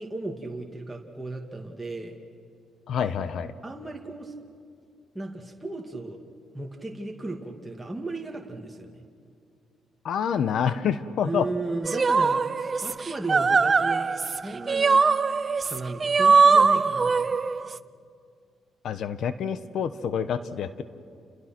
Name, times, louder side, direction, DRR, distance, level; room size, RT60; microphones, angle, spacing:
voice 1, 0.0-2.1 3.6-4.3 5.1-6.2 6.5-9.0 11.2-15.0 15.6-17.4, right 2 dB, 10° right, 0 dB, 2.3 m, -35 dB
voice 2, 2.9-3.5 10.0-11.5 18.8-20.8, left 7 dB, 70° left, 13 dB, 1.1 m, -27 dB
sound 1, 11.8-17.8, right 4 dB, 35° right, 0.6 m, -21 dB
29.5 x 28.5 x 6.1 m, 2.4 s
cardioid pair, 90°, 0 cm